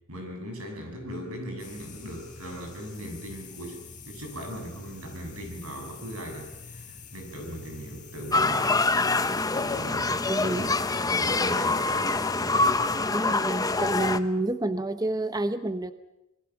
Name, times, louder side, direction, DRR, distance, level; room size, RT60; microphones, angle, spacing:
voice 1, 0.1-9.2 9.5-12.1, equal, 75° right, 4 dB, 6.8 m, -39 dB
sound 1, 1.6-13.0, left 4 dB, 35° left, 5.5 m, -46 dB
sound 2, 8.3-14.2, left 3 dB, 15° left, 0.8 m, -25 dB
voice 2, 10.3-10.6 13.1-15.9, right 2 dB, 15° right, 10 dB, 0.8 m, -29 dB
26.0 x 21.5 x 7.1 m, 0.92 s
head